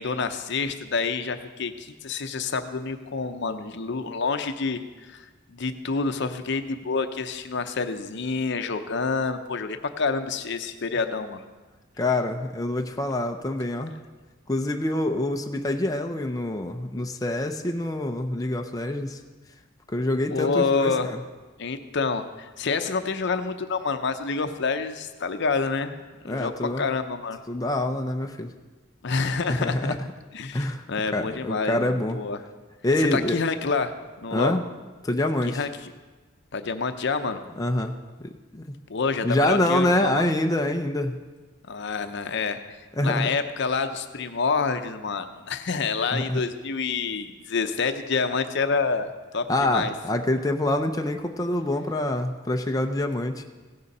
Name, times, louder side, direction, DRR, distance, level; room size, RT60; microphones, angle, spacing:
voice 1, 0.0-11.4 20.3-21.1 21.6-26.0 26.2-27.4 29.0-30.0 30.3-32.4 33.0-33.9 34.2-34.6 35.4-35.9 36.5-37.4 38.9-40.2 41.7-42.6 43.0-49.9, left 4 dB, 60° left, 8 dB, 0.7 m, -28 dB
voice 2, 12.0-13.9 14.5-19.2 19.9-21.2 26.3-26.9 27.5-28.5 29.5-29.9 30.5-30.8 31.1-32.2 32.8-33.4 34.3-34.6 35.0-35.6 37.6-38.7 39.2-41.2 43.0-43.3 46.1-46.4 49.5-53.4, left 1 dB, 20° left, 4 dB, 0.5 m, -26 dB
16.0 x 6.7 x 5.5 m, 1.3 s
head